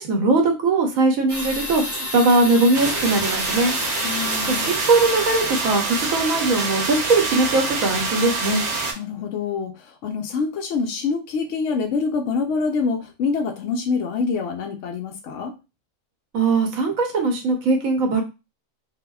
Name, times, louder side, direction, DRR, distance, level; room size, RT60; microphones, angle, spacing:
voice 1, 0.0-3.7 4.5-8.6 16.3-18.2, right 3 dB, 85° right, 3 dB, 1.1 m, -20 dB
sound 1, 1.3-6.7, left 1 dB, 15° left, 0.6 m, -32 dB
sound 2, 2.7-8.9, right 3 dB, 65° right, 0.9 m, -26 dB
voice 2, 4.0-4.7 9.0-9.7 10.0-15.5, left 5 dB, 70° left, 3 dB, 0.9 m, -25 dB
3.3 x 2.1 x 2.3 m, 0.27 s
omnidirectional pair, 1.4 m